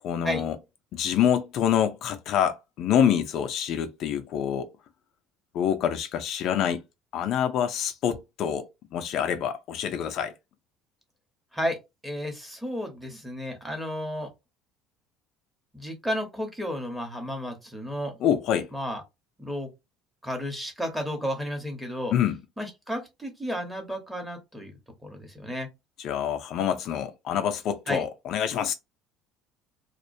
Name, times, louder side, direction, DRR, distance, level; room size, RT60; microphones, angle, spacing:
voice 1, 0.0-0.6 0.9-4.7 5.5-6.8 7.1-10.3 18.2-18.7 22.1-22.4 26.0-28.7, left 9 dB, 55° left, 0.3 m, -26 dB
voice 2, 12.0-14.3 15.7-18.1 18.7-19.0 19.4-19.7 20.2-22.1 22.6-24.7 25.0-25.7 27.9-28.0, equal, 5° right, 0.9 m, -32 dB
2.3 x 2.1 x 2.6 m
cardioid pair, 120°, 0 cm